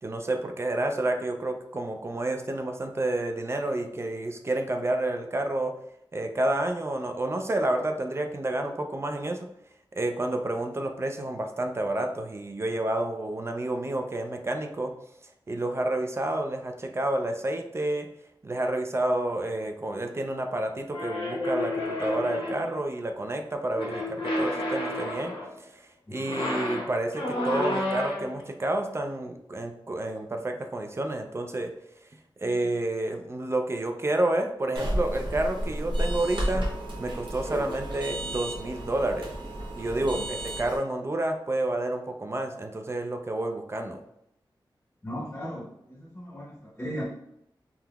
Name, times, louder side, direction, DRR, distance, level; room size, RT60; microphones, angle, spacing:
voice 1, 0.0-5.7 6.1-9.5 10.0-14.9 15.5-18.1 18.4-25.3 25.6-25.8 26.1-31.7 32.4-36.7 37.0-39.3 39.7-44.0, right 1 dB, 30° right, 4 dB, 0.3 m, -29 dB
sound 1, 20.9-22.8 23.7-25.5 26.2-28.4, left 1 dB, 85° left, 0.9 m, -31 dB
sound 2, 34.7-40.8, right 1 dB, 65° right, 0.8 m, -32 dB
voice 2, 45.0-47.1, equal, 20° left, -5 dB, 0.8 m, -37 dB
3.7 x 2.8 x 2.3 m, 0.79 s
wide cardioid pair, 100°, 9 cm